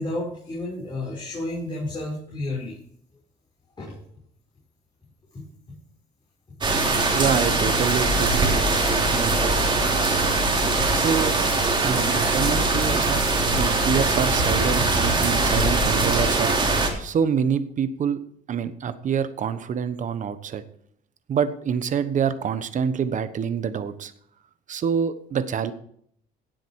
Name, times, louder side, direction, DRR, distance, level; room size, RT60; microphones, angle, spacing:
voice 1, 0.0-2.8 3.8-3.9 5.3-5.4, left 2 dB, 25° left, -4 dB, 6.1 m, -31 dB
sound 1, 6.6-16.9, right 2 dB, 25° right, 3.6 m, -22 dB
voice 2, 7.1-9.5 10.9-11.3 11.8-13.2 13.5-18.2 18.5-20.6 21.3-24.1 24.7-25.7, right 7 dB, 50° right, 12 dB, 1.2 m, -26 dB
17.0 x 7.8 x 4.8 m, 0.65 s
cardioid pair, 110°, 17 cm